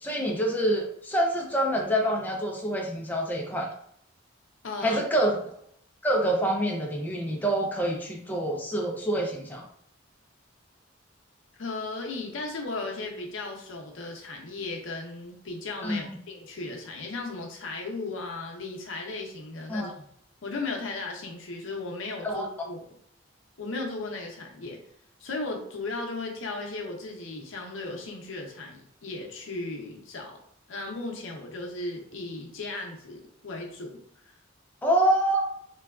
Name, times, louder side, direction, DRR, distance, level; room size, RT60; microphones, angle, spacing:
voice 1, 0.0-3.7 4.8-5.4 6.0-9.6 15.8-16.2 19.7-19.9 22.2-22.5 34.8-35.5, right 1 dB, 10° left, 0 dB, 0.4 m, -26 dB
voice 2, 4.6-5.0 11.6-20.1 20.4-22.8 23.6-24.8 25.2-30.4 30.7-34.0 34.2-34.3, left 3 dB, 75° left, 1 dB, 0.6 m, -36 dB
3.2 x 2.2 x 2.3 m, 0.69 s
head